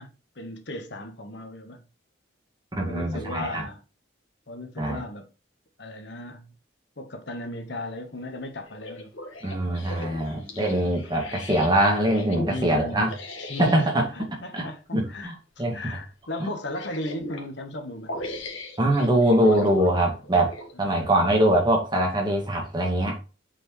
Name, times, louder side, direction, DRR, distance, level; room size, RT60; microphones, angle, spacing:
voice 1, 0.0-1.8 2.8-3.8 4.5-5.3 5.8-6.5 7.0-9.1 9.6-9.9 10.3-10.9 11.2-11.5 12.5-18.1 20.7-21.2, left 1 dB, 60° left, 1.2 m, -37 dB
voice 2, 2.8-3.6 4.8-5.0 9.4-13.1 13.6-14.1 14.5-14.7 14.9-16.0 16.4-16.5 18.8-20.5 20.8-23.2, right 1 dB, 20° right, 2.0 m, -23 dB
sound 1, 8.7-14.0 15.0-15.2 15.6-15.7 16.5-17.5 18.1-20.8 21.4-21.5, equal, 90° left, 1.7 m, -37 dB
7.8 x 4.4 x 3.1 m
head